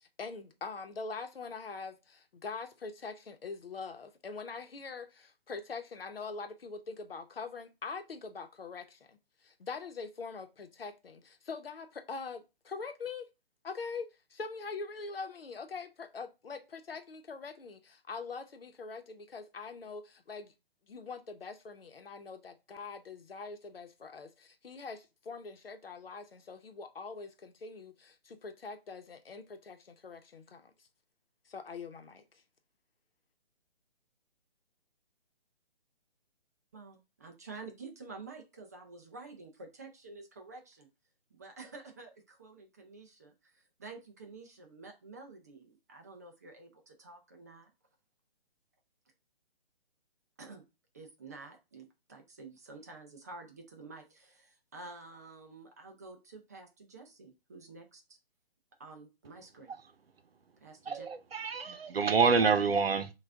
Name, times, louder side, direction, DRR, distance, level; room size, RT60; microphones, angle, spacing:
voice 1, 0.0-13.3 13.6-20.5 20.9-30.9 31.4-32.4, left 4 dB, 75° left, 0.9 m, -43 dB
voice 2, 36.7-40.9 41.3-47.7 50.4-50.6 50.9-58.2 58.8-59.7 60.6-61.1, right 3 dB, 20° right, 0.4 m, -50 dB
voice 3, 60.9-63.1, right 5 dB, 75° right, 0.8 m, -27 dB
6.0 x 2.5 x 3.4 m
figure-of-eight pair, 140°, 30 cm